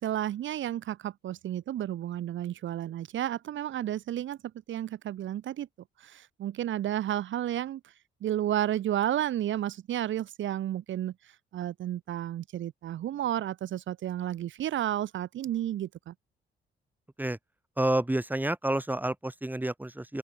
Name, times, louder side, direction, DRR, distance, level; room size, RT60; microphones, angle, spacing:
voice 1, 0.0-4.4 4.7-5.7 6.0-7.9 8.2-16.1, right 12 dB, 75° right, 2.8 m, -32 dB
voice 2, 17.8-20.2, right 1 dB, 10° right, 6.6 m, -29 dB
open air
cardioid pair, 90°, 20 cm